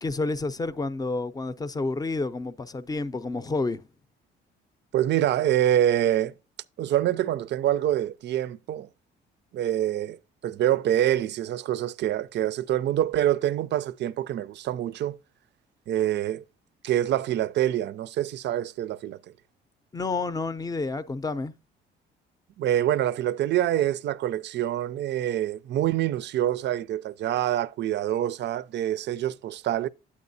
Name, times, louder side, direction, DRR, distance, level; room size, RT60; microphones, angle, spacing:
voice 1, 0.0-3.8 19.9-21.5, left 3 dB, 20° left, 0.6 m, -29 dB
voice 2, 4.9-6.3 6.8-8.9 9.5-10.2 10.4-15.2 15.9-16.4 16.8-19.2 22.6-29.9, right 12 dB, 60° right, 0.4 m, -26 dB
8.5 x 8.5 x 2.7 m
cardioid pair, 85°, 21 cm